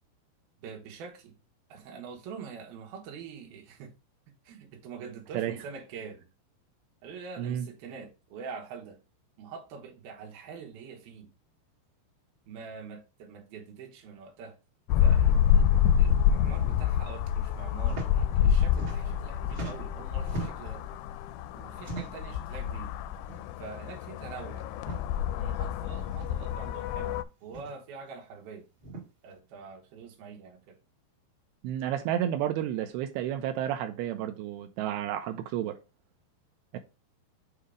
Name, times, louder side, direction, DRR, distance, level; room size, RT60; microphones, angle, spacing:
voice 1, 0.6-1.4 1.7-3.9 4.4-6.3 7.0-9.0 9.4-11.3 12.5-14.6 15.0-15.7 16.0-20.8 21.5-22.9 23.6-24.7 25.4-28.7 29.2-30.8, right 5 dB, 65° right, 2.8 m, -45 dB
sound 1, 14.9-27.2, left 9 dB, 85° left, 2.4 m, -27 dB
sound 2, 17.8-18.1 18.4-19.2 19.5-20.8 21.8-22.3 23.2-23.4 23.7-23.8 24.7-25.0 26.2-26.3 27.4-27.7 28.8-29.0, right 2 dB, 50° right, 1.6 m, -39 dB
voice 2, 31.6-35.8 36.7-36.8, right 11 dB, 85° right, 2.3 m, -31 dB
7.8 x 2.8 x 4.9 m
omnidirectional pair, 5.1 m